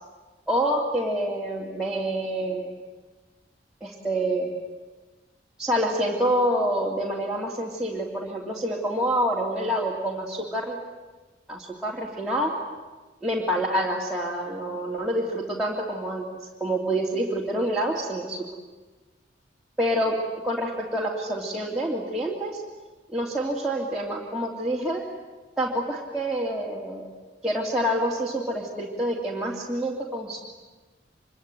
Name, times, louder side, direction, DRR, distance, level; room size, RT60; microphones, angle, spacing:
voice 1, 0.5-2.7 3.8-4.5 5.6-10.8 11.5-12.5 13.2-16.3 16.6-18.5 19.8-20.2 20.4-22.6 23.1-25.1 25.6-27.0 27.4-30.4, right 1 dB, 5° right, -6 dB, 2.9 m, -27 dB
26.0 x 24.0 x 9.2 m, 1.2 s
head